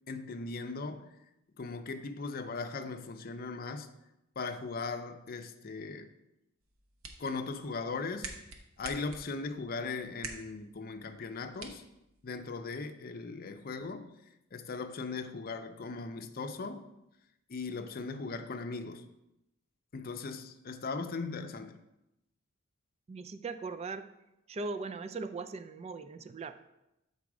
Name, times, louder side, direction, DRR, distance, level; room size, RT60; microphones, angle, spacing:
voice 1, 0.1-1.1 1.6-3.9 4.4-6.1 7.2-8.3 8.8-11.8 12.2-14.1 14.5-16.9 17.5-19.1 19.9-21.8, left 4 dB, 45° left, 0.5 m, -38 dB
sound 1, 6.6-12.6, right 3 dB, 90° right, 0.9 m, -49 dB
voice 2, 23.1-24.0 24.5-26.5, right 3 dB, 30° right, 0.3 m, -39 dB
7.1 x 4.1 x 4.8 m
head